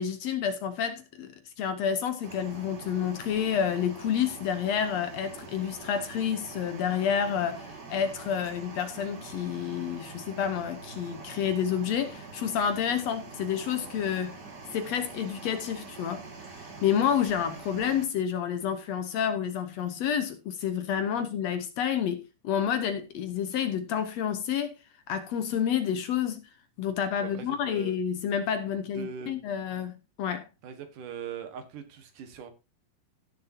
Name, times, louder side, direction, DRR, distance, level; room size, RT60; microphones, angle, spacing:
voice 1, 0.0-14.4 14.7-16.2 16.5-24.8 25.1-26.5 26.8-30.5, left 8 dB, 75° left, 1.6 m, -29 dB
sound 1, 2.2-18.0, right 3 dB, 35° right, 2.1 m, -45 dB
voice 2, 27.2-27.9 29.0-29.3 30.6-32.5, right 6 dB, 70° right, 3.0 m, -41 dB
16.0 x 6.8 x 2.8 m
omnidirectional pair, 3.9 m